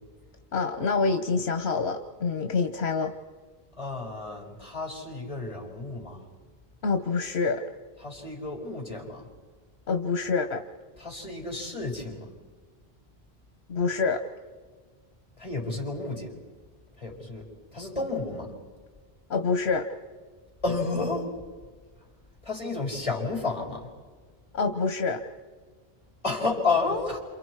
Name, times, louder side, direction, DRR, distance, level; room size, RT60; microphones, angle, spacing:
voice 1, 0.5-3.1 6.8-7.6 9.9-10.6 13.7-14.2 19.3-19.9 24.5-25.2, left 4 dB, 80° left, 7 dB, 1.3 m, -26 dB
voice 2, 3.8-6.2 8.0-9.3 11.0-12.3 15.4-16.3 17.0-17.5 17.7-18.5 20.6-21.3 22.4-23.9 26.2-27.2, left 3 dB, 30° left, -1 dB, 5.0 m, -31 dB
29.0 x 27.5 x 4.8 m, 1.5 s
omnidirectional pair, 1.1 m